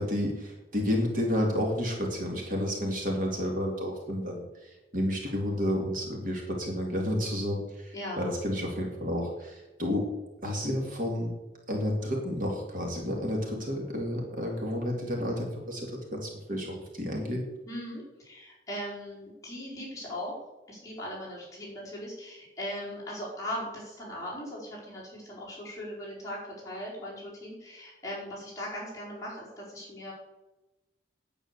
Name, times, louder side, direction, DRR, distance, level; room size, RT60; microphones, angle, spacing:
voice 1, 0.0-10.1 10.4-11.3 11.7-17.5, equal, 45° right, 0 dB, 2.3 m, -31 dB
voice 2, 7.9-8.3 17.7-20.3 20.7-26.4 26.6-30.1, equal, 15° left, -6 dB, 4.4 m, -39 dB
9.9 x 8.6 x 6.7 m, 1.1 s
head